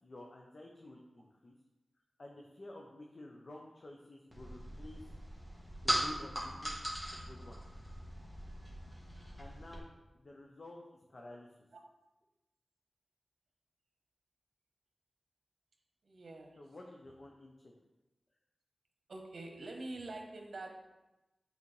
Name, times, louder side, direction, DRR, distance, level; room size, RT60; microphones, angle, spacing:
voice 1, 0.0-1.6 2.2-5.1 5.8-6.8 7.1-7.6 9.1-10.8 11.1-11.5 16.6-17.7, left 1 dB, 50° left, -1 dB, 0.7 m, -51 dB
sound 1, 4.3-9.8, equal, 10° left, 1.5 m, -40 dB
voice 2, 16.0-16.6 19.1-20.8, right 2 dB, 75° right, 2 dB, 1.0 m, -46 dB
8.3 x 4.0 x 3.3 m, 1.0 s
wide cardioid pair, 70°, 0 cm